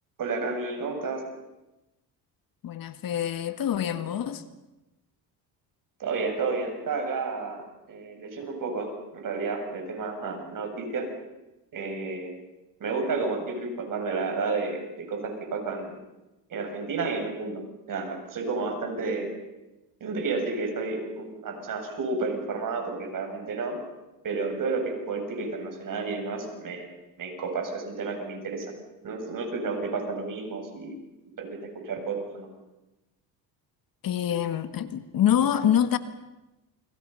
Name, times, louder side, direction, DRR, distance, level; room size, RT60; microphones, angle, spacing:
voice 1, 0.2-1.2 6.0-11.1 11.7-12.3 12.8-16.0 16.5-17.6 17.9-19.3 20.0-23.8 24.2-26.9 27.2-28.7 29.0-30.9 31.4-32.5, right 4 dB, 50° right, 7.5 m, -31 dB
voice 2, 2.6-4.4 34.0-36.0, left 10 dB, 55° left, 1.8 m, -25 dB
29.0 x 25.5 x 5.7 m
cardioid pair, 100°, 40 cm